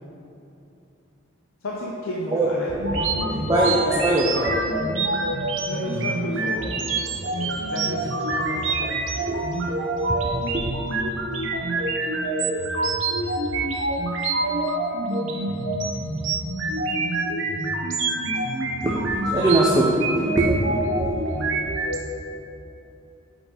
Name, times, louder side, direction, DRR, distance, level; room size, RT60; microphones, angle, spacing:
voice 1, 1.6-3.1 5.7-8.9, left 1 dB, 80° left, -3 dB, 0.6 m, -33 dB
voice 2, 2.3-4.6 8.3-8.4 8.7-8.8 9.2-9.8 10.1-10.7 18.8-19.9 20.1-21.5, right 1 dB, 20° right, -3 dB, 0.4 m, -23 dB
sound 1, 2.8-22.0, right 2 dB, 65° right, 0.6 m, -26 dB
5.2 x 4.4 x 4.4 m, 2.8 s
head